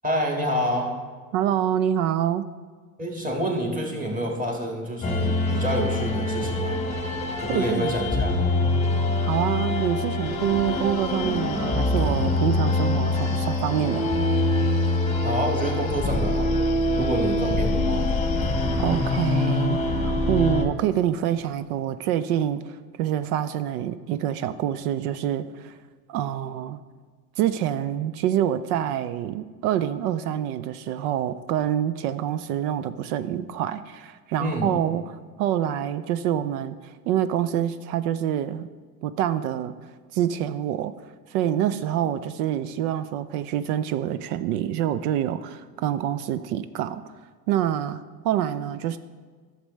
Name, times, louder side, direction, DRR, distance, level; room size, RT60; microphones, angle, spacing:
voice 1, 0.0-0.9 3.0-6.8 7.4-8.3 15.2-18.0 34.4-34.7, equal, 15° right, 0 dB, 1.8 m, -28 dB
voice 2, 1.3-2.5 7.5-8.0 9.2-14.1 18.8-25.8 26.1-26.8 27.4-35.0 35.4-38.7 39.0-39.7 40.1-40.9 41.3-47.0 47.5-49.0, right 11 dB, 65° right, 13 dB, 0.5 m, -26 dB
sound 1, 5.0-20.7, left 2 dB, 15° left, 1.0 m, -24 dB
Wind, 10.3-19.5, left 8 dB, 40° left, 0.6 m, -42 dB
11.0 x 6.7 x 3.1 m, 1.5 s
hypercardioid pair, 90°, 49 cm